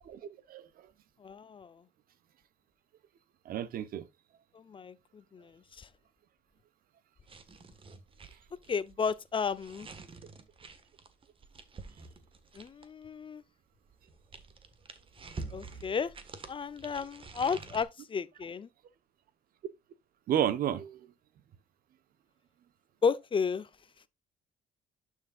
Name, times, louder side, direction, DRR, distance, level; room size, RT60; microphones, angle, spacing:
voice 1, 0.0-0.9 3.4-4.1 20.3-21.0, right 10 dB, 60° right, 1.0 m, -32 dB
voice 2, 1.2-1.8 4.5-5.9 8.7-9.9 12.5-13.4 15.5-16.1 16.5-18.7 23.0-23.7, left 6 dB, 30° left, 0.6 m, -33 dB
sound 1, 7.2-13.0 13.9-17.8, right 4 dB, 30° right, 1.6 m, -48 dB
11.0 x 6.5 x 2.4 m
cardioid pair, 110°, 17 cm